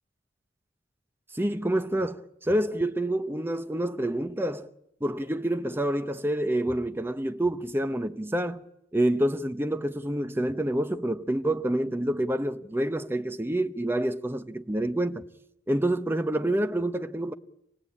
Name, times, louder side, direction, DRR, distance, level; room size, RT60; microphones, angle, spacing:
voice 1, 1.3-4.7 5.0-8.6 8.9-15.2 15.7-17.3, right 1 dB, 10° right, 0.8 m, -27 dB
26.5 x 18.0 x 8.7 m
head